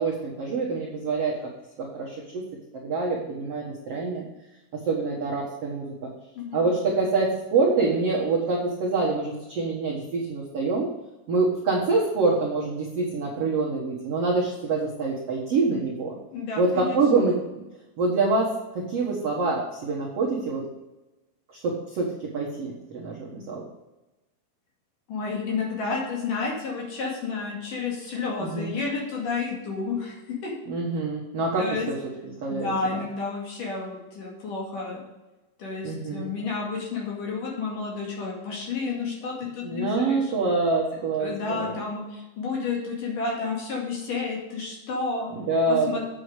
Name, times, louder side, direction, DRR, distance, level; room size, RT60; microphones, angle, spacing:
voice 1, 0.0-1.4 1.8-2.4 2.7-4.2 4.7-6.1 6.5-10.9 11.3-16.1 16.6-17.6 18.0-20.6 21.6-23.6 28.4-28.7 30.7-32.0 32.2-33.0 35.8-36.3 39.6-41.8 45.3-46.0, right 3 dB, 65° right, -3 dB, 1.5 m, -26 dB
voice 2, 16.3-17.0 25.1-30.5 31.6-31.9 32.5-35.1 35.6-40.3 40.9-45.3 45.7-46.0, left 4 dB, 55° left, -2 dB, 3.5 m, -31 dB
8.7 x 8.0 x 5.0 m, 1.1 s
omnidirectional pair, 5.0 m